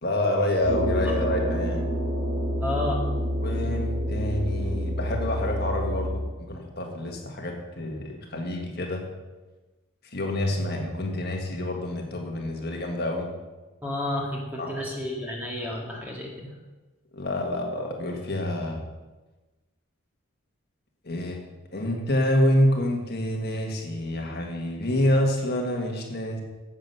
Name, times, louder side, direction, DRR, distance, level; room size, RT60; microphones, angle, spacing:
voice 1, 0.0-1.9 3.4-9.0 10.1-13.3 14.6-14.7 17.1-18.8 21.0-21.4 21.7-26.4, left 1 dB, 50° left, 1 dB, 1.7 m, -27 dB
sound 1, 0.6-6.2, equal, 50° right, 3.4 m, -28 dB
voice 2, 2.6-3.0 13.8-16.5, left 1 dB, 10° right, -2 dB, 1.9 m, -31 dB
10.0 x 8.1 x 6.8 m, 1.2 s
head